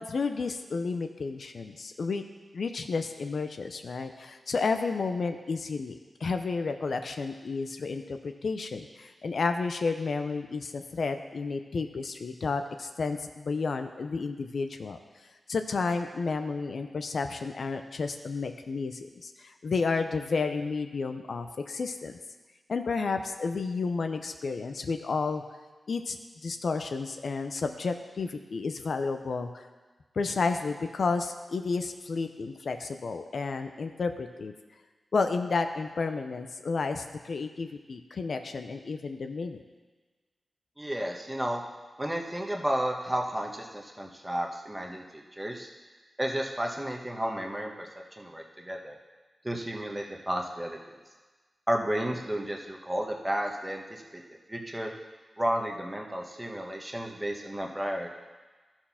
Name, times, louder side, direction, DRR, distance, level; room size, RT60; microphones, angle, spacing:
voice 1, 0.1-2.2 2.5-15.0 15.5-22.2 22.7-25.4 25.9-26.2 26.4-29.7 30.2-34.5 35.1-39.6, left 4 dB, 70° left, 7 dB, 0.6 m, -31 dB
voice 2, 40.8-41.6 42.0-45.7 46.2-48.9 49.4-50.9 51.7-54.2 54.5-54.9 55.4-58.1, right 1 dB, 15° right, 1 dB, 1.2 m, -32 dB
12.5 x 4.4 x 5.7 m, 1.3 s
cardioid pair, 65°, 0 cm